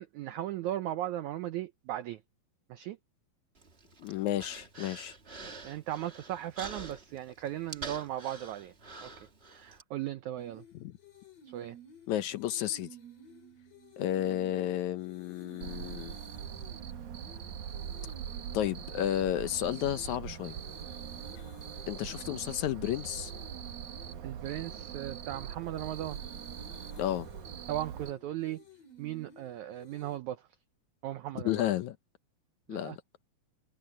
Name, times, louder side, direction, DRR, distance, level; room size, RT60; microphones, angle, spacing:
voice 1, 0.0-2.2 2.7-3.0 5.4-8.7 9.0-9.1 9.5-10.6 11.5-11.8 24.2-26.2 27.7-28.6 29.0-30.4 31.0-31.7 32.7-33.0, right 13 dB, 80° right, 1.7 m, -37 dB
Human voice, 3.6-9.8, right 3 dB, 30° right, 1.1 m, -47 dB
voice 2, 4.0-5.1 10.7-10.9 12.1-12.9 14.0-16.1 18.5-20.5 21.9-23.3 27.0-27.3 31.4-32.0 32.7-33.0, left 12 dB, 75° left, 1.8 m, -32 dB
sound 1, 10.4-30.2, right 2 dB, 40° left, 4.6 m, -53 dB
Cricket, 15.6-28.1, right 9 dB, 65° right, 2.3 m, -42 dB
omnidirectional pair, 4.3 m